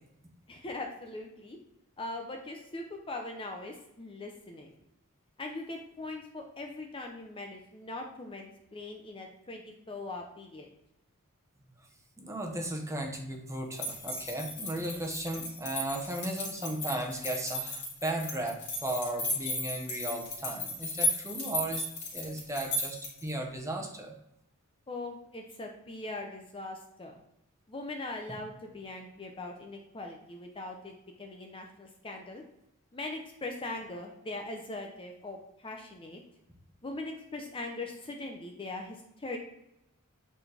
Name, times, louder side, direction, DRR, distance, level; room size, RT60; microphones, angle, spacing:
voice 1, 0.5-1.6 2.0-4.7 5.4-10.7 24.9-27.2 27.7-32.4 32.9-36.2 36.8-39.4, left 2 dB, 25° left, 2 dB, 0.7 m, -41 dB
voice 2, 12.2-21.8 22.1-24.1 28.3-28.4, right 1 dB, 15° right, 1 dB, 1.0 m, -36 dB
sound 1, 13.7-23.3, left 1 dB, 55° left, 2.3 m, -35 dB
8.4 x 4.1 x 3.4 m, 0.83 s
head